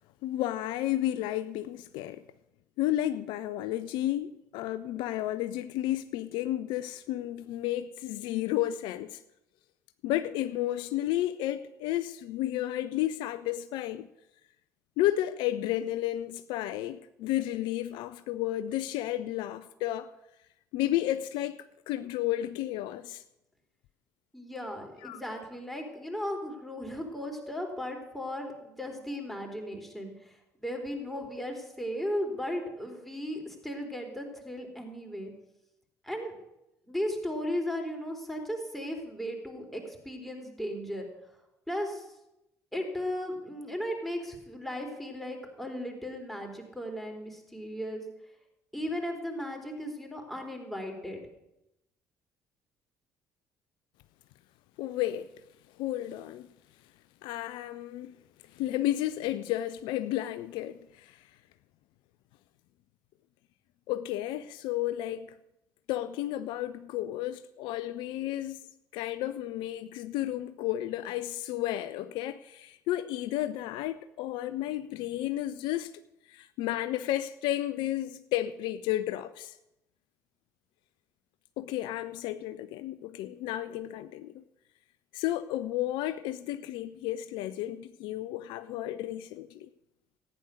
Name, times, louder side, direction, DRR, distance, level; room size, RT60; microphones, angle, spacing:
voice 1, 0.2-2.2 2.8-9.2 10.0-14.1 15.0-20.1 20.7-23.2 25.0-25.2 54.8-55.3 55.8-56.5 57.2-58.2 58.5-61.3 63.9-65.3 65.9-75.9 76.3-79.6 81.6-84.4 85.1-89.7, left 13 dB, 65° left, 0.5 m, -32 dB
voice 2, 24.3-35.3 36.0-36.4 36.9-41.1 41.7-42.1 42.7-48.0 48.7-51.2, equal, ahead, 4.0 m, -36 dB
14.5 x 9.6 x 6.4 m
figure-of-eight pair, 50°, 9 cm